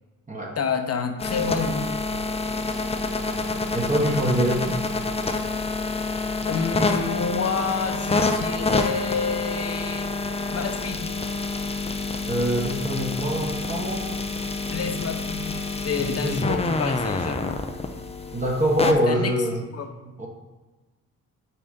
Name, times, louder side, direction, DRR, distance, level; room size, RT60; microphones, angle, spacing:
voice 1, 0.6-1.9 6.5-10.1 10.5-11.1 14.7-17.6 19.1-19.3 19.7-19.9, left 5 dB, 45° left, 6 dB, 0.9 m, -28 dB
sound 1, 1.2-18.9, left 3 dB, 20° left, 0.6 m, -28 dB
voice 2, 3.7-4.8 12.3-14.2 16.0-16.5 18.3-19.6 20.0-20.3, equal, 20° right, -3 dB, 1.2 m, -25 dB
5.7 x 4.0 x 5.2 m, 1.2 s
cardioid pair, 70°, 34 cm